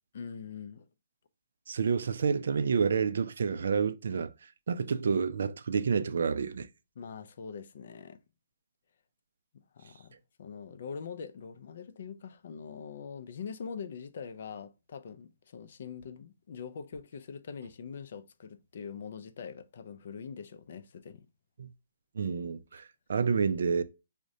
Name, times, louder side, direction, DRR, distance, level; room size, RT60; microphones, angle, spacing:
voice 1, 0.1-0.9 7.0-8.2 9.5-21.3, left 6 dB, 55° left, 0.4 m, -43 dB
voice 2, 1.7-4.3 4.7-6.7 21.6-21.7 22.2-23.8, right 6 dB, 70° right, 0.3 m, -29 dB
4.8 x 2.1 x 2.6 m
hypercardioid pair, 160°, 0 cm